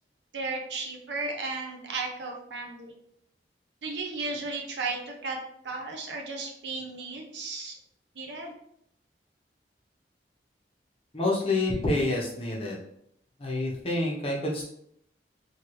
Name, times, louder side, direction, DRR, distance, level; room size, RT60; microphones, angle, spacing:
voice 1, 0.3-3.0 3.8-5.4 5.6-7.7 8.2-8.5, right 3 dB, 80° right, 2 dB, 0.7 m, -34 dB
voice 2, 11.1-12.8 13.4-14.6, left 2 dB, 35° left, -3 dB, 0.8 m, -27 dB
2.9 x 2.8 x 3.0 m, 0.71 s
head